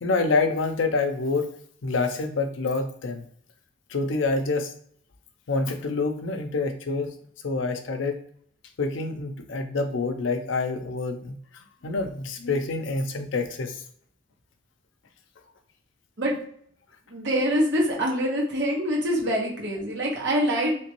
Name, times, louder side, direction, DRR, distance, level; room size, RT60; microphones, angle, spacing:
voice 1, 0.0-1.5 1.8-3.2 3.9-4.7 5.5-7.1 7.4-8.2 8.8-11.4 11.8-13.8, left 3 dB, 70° left, 7 dB, 0.5 m, -27 dB
voice 2, 17.1-20.8, equal, 65° right, -3 dB, 1.3 m, -25 dB
3.1 x 3.0 x 3.0 m, 0.63 s
head